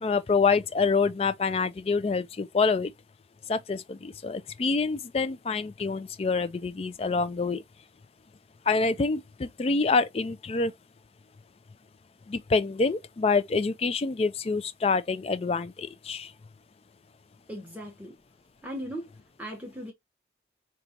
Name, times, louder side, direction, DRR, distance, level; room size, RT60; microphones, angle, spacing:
voice 1, 0.0-2.9 3.5-7.6 8.7-10.7 12.3-16.3, left 4 dB, 35° left, 0.3 m, -26 dB
voice 2, 17.5-18.2 18.6-19.1 19.4-19.9, equal, 10° right, 0.9 m, -38 dB
5.1 x 2.3 x 2.7 m
head